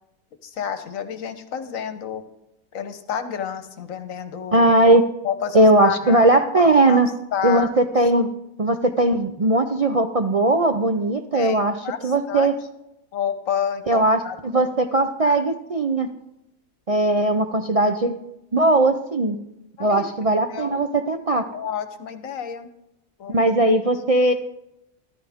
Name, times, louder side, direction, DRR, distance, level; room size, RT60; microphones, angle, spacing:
voice 1, 0.4-2.2 2.7-4.7 5.2-6.3 6.9-7.0 7.3-7.7 11.3-12.5 13.1-14.6 15.2-15.4 19.8-20.7 21.5-22.7 23.2-23.3, left 8 dB, 70° left, 10 dB, 1.3 m, -30 dB
voice 2, 4.5-5.0 5.5-7.1 7.4-8.3 8.6-11.8 12.0-12.5 13.9-16.1 16.9-18.2 18.5-19.4 19.8-21.4 23.3-24.3, right 2 dB, 55° right, 5 dB, 0.4 m, -19 dB
13.5 x 12.5 x 3.5 m, 0.86 s
omnidirectional pair, 1.5 m